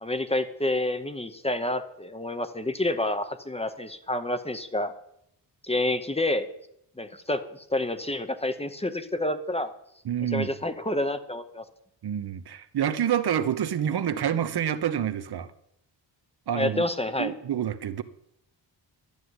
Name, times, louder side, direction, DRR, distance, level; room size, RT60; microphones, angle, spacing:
voice 1, 0.0-4.9 5.6-6.5 7.0-9.7 10.2-11.6 16.5-17.3, left 1 dB, 15° left, 10 dB, 0.9 m, -28 dB
voice 2, 10.0-10.5 12.0-15.5 16.5-16.9 17.2-18.0, right 9 dB, 65° right, 11 dB, 1.1 m, -27 dB
12.5 x 7.7 x 9.7 m, 0.75 s
wide cardioid pair, 145°, 42 cm